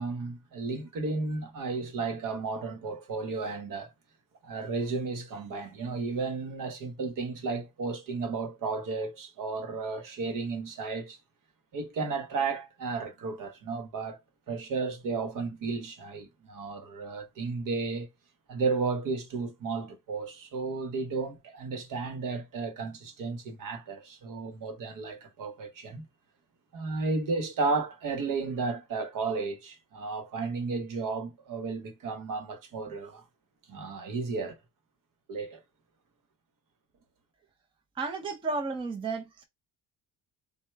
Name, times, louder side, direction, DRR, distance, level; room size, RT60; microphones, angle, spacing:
voice 1, 0.0-3.9 4.4-11.2 11.7-14.2 14.5-18.1 18.5-26.0 26.7-33.3 33.7-34.6 35.3-35.6, right 4 dB, 55° right, 1.0 m, -33 dB
voice 2, 38.0-39.4, right 3 dB, 15° right, 0.5 m, -33 dB
4.3 x 2.2 x 3.3 m
cardioid pair, 140°, 40 cm